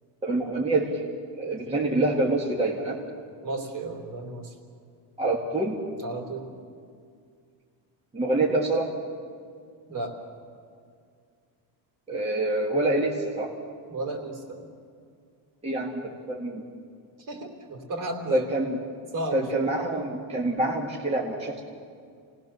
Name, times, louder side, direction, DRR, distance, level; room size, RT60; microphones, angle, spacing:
voice 1, 0.2-1.0 1.4-3.0 5.2-5.8 8.1-8.9 12.1-13.5 15.6-16.6 18.3-18.8 19.3-21.6, right 2 dB, 15° right, -2 dB, 1.7 m, -26 dB
voice 2, 3.4-4.5 6.0-6.5 9.9-10.1 13.9-14.6 17.3-18.5 19.1-19.7, right 2 dB, 45° right, 3 dB, 3.5 m, -33 dB
28.5 x 18.5 x 6.8 m, 2.2 s
cardioid pair, 155°, 46 cm